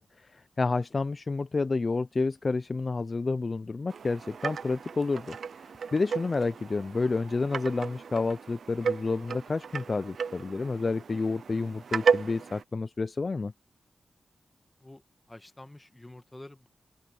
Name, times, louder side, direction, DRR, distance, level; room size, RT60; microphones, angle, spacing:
voice 1, 0.2-13.5, left 3 dB, 45° left, 0.5 m, -30 dB
sound 1, 3.9-12.6, right 6 dB, 75° right, 0.5 m, -34 dB
voice 2, 15.3-16.7, left 1 dB, 20° left, 1.5 m, -48 dB
open air
cardioid pair, 65°, 0 cm